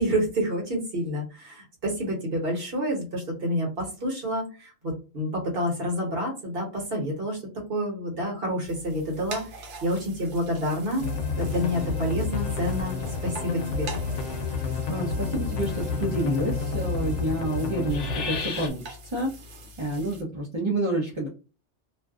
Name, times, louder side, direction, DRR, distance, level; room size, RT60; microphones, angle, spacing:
voice 1, 0.0-7.4 7.7-11.1 11.4-13.0 13.2-13.9, equal, 55° right, -1 dB, 1.1 m, -28 dB
sound 1, 8.6-20.2, right 2 dB, 75° right, 1.0 m, -44 dB
sound 2, 11.0-18.7, left 4 dB, 80° left, 0.9 m, -30 dB
voice 2, 14.9-21.3, right 1 dB, 35° right, -4 dB, 0.5 m, -29 dB
2.5 x 2.2 x 2.3 m, 0.33 s
omnidirectional pair, 1.2 m